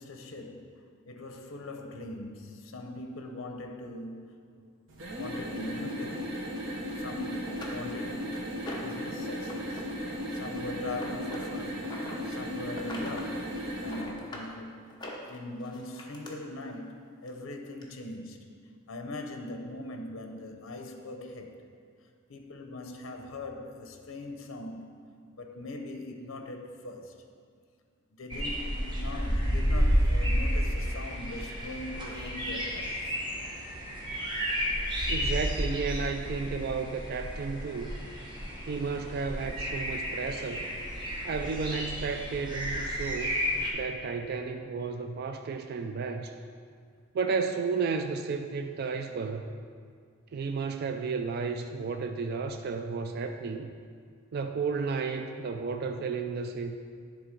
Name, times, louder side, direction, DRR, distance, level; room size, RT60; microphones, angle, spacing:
voice 1, 0.0-4.7 5.1-6.4 7.0-9.8 10.3-11.9 12.3-14.8 15.3-18.6 18.9-21.6 22.3-24.9 25.4-27.1 28.2-33.0, left 2 dB, 75° left, 4 dB, 0.7 m, -41 dB
sound 1, 4.9-14.1, equal, 70° right, 1.2 m, -36 dB
sound 2, 6.9-7.0 7.5-9.0 9.4-9.8 10.1-12.2 12.7-13.3 13.6-14.5 14.9-16.3 17.3-17.4 17.8-17.9, left 2 dB, 20° left, 0.9 m, -44 dB
sound 3, 28.3-43.7, equal, 20° right, 1.2 m, -31 dB
voice 2, 35.1-38.0 38.7-40.7 41.2-43.3 43.7-46.3 47.1-49.5 50.3-53.7 54.3-56.8, right 5 dB, 50° right, 6 dB, 0.3 m, -32 dB
10.0 x 3.9 x 5.1 m, 2.1 s
head